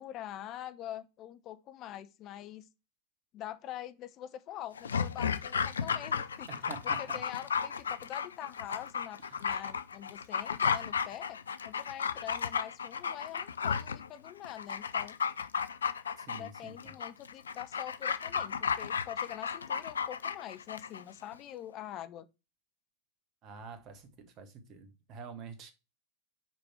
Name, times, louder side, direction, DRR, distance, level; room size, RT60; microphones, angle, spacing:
voice 1, 0.0-2.7 3.3-6.5 7.0-11.4 11.6-15.2 16.3-22.3, left 12 dB, 35° left, 0.7 m, -44 dB
Dog, 4.7-21.0 21.3-21.4, left 6 dB, 70° left, 0.5 m, -34 dB
voice 2, 6.5-7.2 9.2-9.5 16.2-16.9 23.4-25.7, right 5 dB, 35° right, 1.5 m, -47 dB
6.1 x 5.2 x 4.3 m
figure-of-eight pair, 90°, 0 cm